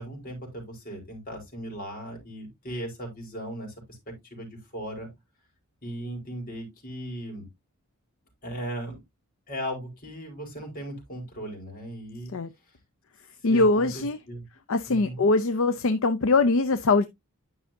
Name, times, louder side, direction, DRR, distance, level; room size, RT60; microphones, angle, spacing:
voice 1, 0.0-5.1 5.8-7.5 8.4-9.0 9.5-12.3 13.4-14.4 14.9-15.2, right 1 dB, 40° left, 4.4 m, -37 dB
voice 2, 13.4-14.2 14.7-17.1, left 3 dB, 60° left, 0.6 m, -22 dB
11.0 x 5.6 x 2.7 m
head